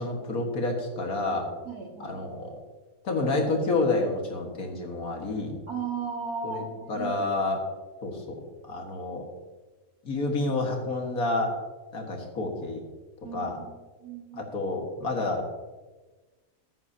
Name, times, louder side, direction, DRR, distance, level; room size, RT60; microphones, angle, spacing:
voice 1, 0.0-1.5 2.0-2.5 3.0-5.6 6.4-6.6 6.9-7.6 8.0-9.2 10.0-11.6 11.9-12.8 13.3-13.6 14.3-15.5, left 2 dB, 70° left, 2 dB, 2.2 m, -29 dB
voice 2, 1.6-2.2 5.7-7.3 13.2-13.7 14.0-14.4, right 5 dB, 90° right, 0 dB, 2.6 m, -36 dB
14.0 x 10.5 x 2.8 m, 1.3 s
omnidirectional pair, 1.6 m